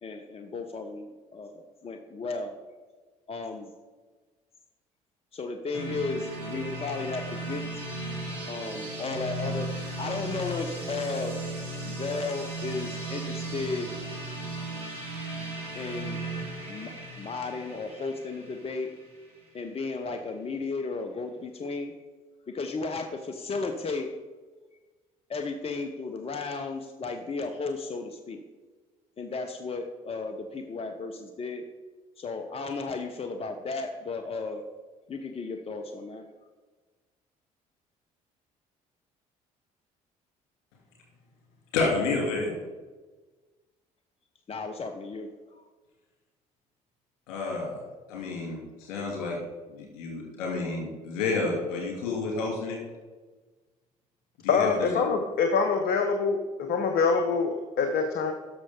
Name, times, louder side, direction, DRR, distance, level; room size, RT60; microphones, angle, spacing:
voice 1, 0.0-2.5 3.3-3.7 5.3-7.7 8.5-9.7 10.0-11.4 11.9-13.9 15.7-16.4 16.7-18.9 19.5-21.9 22.5-24.1 25.3-28.4 29.2-31.6 32.2-34.6 35.1-36.2 44.5-45.7, left 3 dB, 35° left, 6 dB, 0.9 m, -34 dB
sound 1, 5.7-19.5, right 2 dB, 85° right, 2.7 m, -36 dB
voice 2, 41.7-42.6 47.3-47.8 48.1-49.4 49.7-52.8 54.4-54.9, left 3 dB, 75° left, -1 dB, 2.8 m, -30 dB
voice 3, 54.5-56.4 56.7-58.3, left 5 dB, 60° left, 5 dB, 0.9 m, -25 dB
11.0 x 6.5 x 3.7 m, 1.3 s
hypercardioid pair, 50°, 18 cm